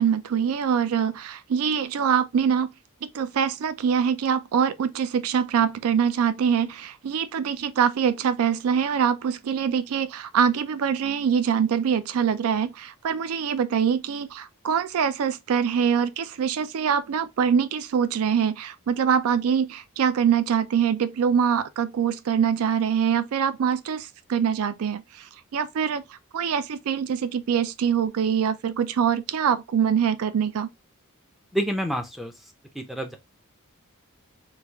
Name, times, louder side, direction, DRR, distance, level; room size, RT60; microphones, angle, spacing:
voice 1, 0.0-2.7 3.0-30.7, right 7 dB, 70° right, 0.4 m, -24 dB
voice 2, 31.5-32.3 32.7-33.2, equal, ahead, 0.4 m, -28 dB
3.2 x 2.4 x 3.3 m
head